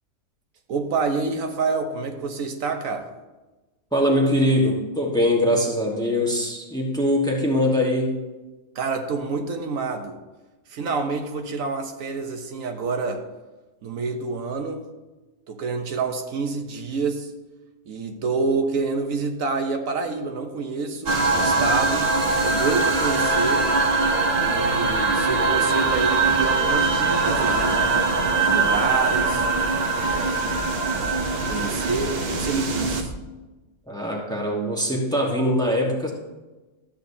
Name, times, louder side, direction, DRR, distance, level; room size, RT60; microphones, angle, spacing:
voice 1, 0.7-3.1 8.7-10.2 10.7-13.2 13.8-14.8 15.5-17.3 17.9-22.1 22.4-23.7 24.4-27.8 28.4-29.5 30.0-30.5 31.3-33.1, right 4 dB, 75° right, 5 dB, 1.2 m, -28 dB
voice 2, 3.9-8.2 33.9-36.1, left 1 dB, 5° left, -1 dB, 1.1 m, -22 dB
sound 1, 21.1-33.0, right 3 dB, 50° right, 0.9 m, -22 dB
sound 2, 25.9-26.0 26.3-26.5 26.8-27.0 27.3-27.9 28.2-28.3 28.6-28.8 29.1-29.7 30.0-30.2 30.5-30.6 30.9-31.6 31.9-32.0 32.3-32.5 32.8-33.2, right 1 dB, 25° right, 0.9 m, -36 dB
13.0 x 8.2 x 2.7 m, 1.2 s
omnidirectional pair, 1.4 m